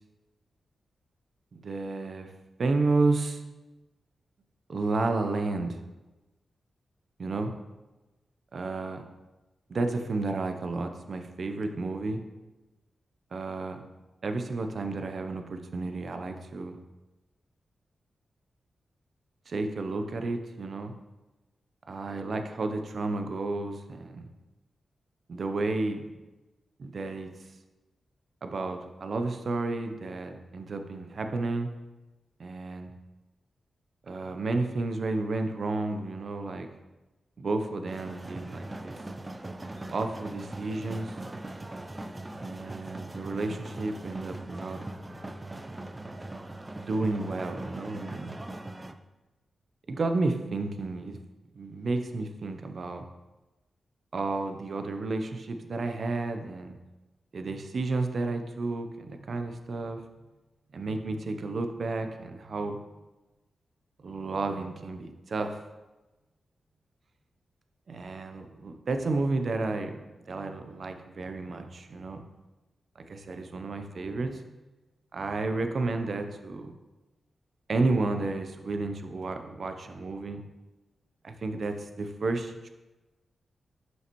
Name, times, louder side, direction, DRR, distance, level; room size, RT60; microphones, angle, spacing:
voice 1, 1.5-2.3 2.6-3.4 4.7-5.8 7.2-7.5 8.5-9.0 9.7-12.2 13.3-13.8 14.2-16.8 19.5-20.9 21.9-24.3 25.3-26.1 26.8-27.3 28.4-31.7 32.4-32.9 34.1-36.7 37.4-39.0 39.9-41.1 42.4-44.8 46.8-48.3 49.9-51.2 51.5-53.0 54.1-56.8 57.3-60.0 60.7-62.9 64.0-65.6 67.9-72.2 73.1-74.5 75.1-76.7 77.7-80.4 81.2-82.7, right 3 dB, 60° right, 6 dB, 0.7 m, -31 dB
sound 1, 37.9-48.9, right 2 dB, 25° right, 0.5 m, -40 dB
7.6 x 5.7 x 3.0 m, 1.1 s
cardioid pair, 45°, 0 cm